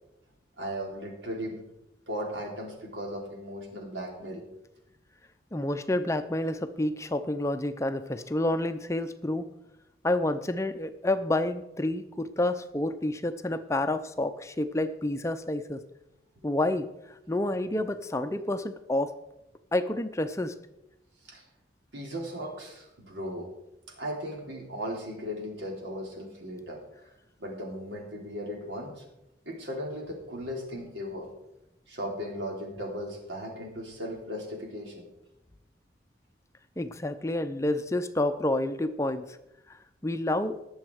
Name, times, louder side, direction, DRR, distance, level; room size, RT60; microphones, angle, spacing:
voice 1, 0.6-1.6 2.1-4.4 21.2-21.4 21.9-23.5 24.0-26.8 27.4-29.0 29.5-31.3 31.9-35.1, equal, 85° right, 0 dB, 3.5 m, -37 dB
voice 2, 5.5-9.5 10.0-15.8 16.4-16.9 17.3-19.1 19.7-20.5 36.8-39.4 39.7-40.6, left 1 dB, 15° left, 9 dB, 0.5 m, -29 dB
19.5 x 7.2 x 4.7 m, 0.90 s
head